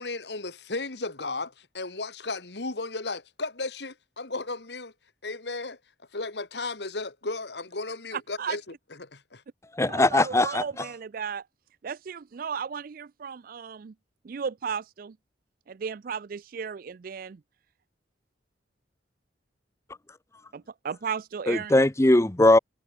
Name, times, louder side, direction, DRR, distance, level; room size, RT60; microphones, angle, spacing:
voice 1, 0.0-4.9 5.2-5.8 6.1-8.6 9.0-9.4, left 3 dB, 65° left, 2.1 m, -34 dB
voice 2, 8.1-8.6 9.8-11.5 11.8-13.9 14.2-15.2 15.7-17.4 20.5-21.7, right 6 dB, 50° right, 0.4 m, -35 dB
voice 3, 9.7-10.9 21.5-22.6, left 1 dB, 15° left, 0.8 m, -20 dB
head